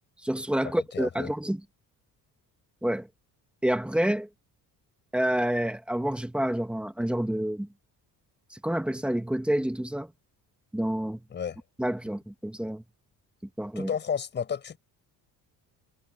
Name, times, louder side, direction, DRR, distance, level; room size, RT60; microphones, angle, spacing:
voice 1, 0.2-1.6 2.8-3.1 3.6-4.3 5.1-7.7 8.5-10.1 10.7-11.2 11.8-12.8 13.6-13.9, right 1 dB, 5° right, 1.0 m, -28 dB
voice 2, 0.9-1.3 11.3-11.6 13.8-14.8, left 7 dB, 30° left, 5.7 m, -32 dB
cardioid pair, 170°, 35 cm